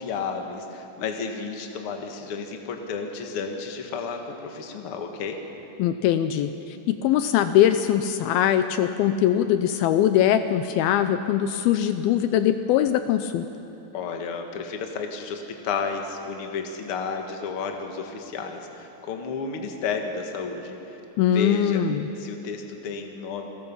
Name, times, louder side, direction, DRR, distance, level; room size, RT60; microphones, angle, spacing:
voice 1, 0.0-5.4 13.9-21.0 21.3-21.8 22.2-23.5, left 5 dB, 50° left, 4 dB, 1.9 m, -32 dB
voice 2, 5.8-13.4 21.2-22.1, left 10 dB, 80° left, 10 dB, 2.4 m, -22 dB
29.0 x 21.0 x 5.6 m, 2.9 s
omnidirectional pair, 4.5 m